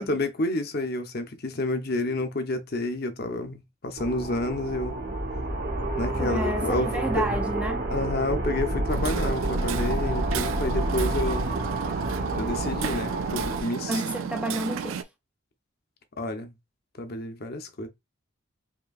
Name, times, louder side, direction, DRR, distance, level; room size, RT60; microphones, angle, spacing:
voice 1, 0.0-5.0 6.0-7.3 7.9-11.5 12.4-14.0 16.2-16.5 17.0-17.9, left 2 dB, 45° left, 0.7 m, -29 dB
sound 1, 4.0-13.6, right 1 dB, 45° right, 0.9 m, -29 dB
voice 2, 6.2-7.9 13.9-15.0, right 1 dB, 5° right, 0.3 m, -30 dB
Hammer, 8.9-15.0, right 7 dB, 75° right, 0.4 m, -32 dB
5.1 x 2.9 x 2.3 m
head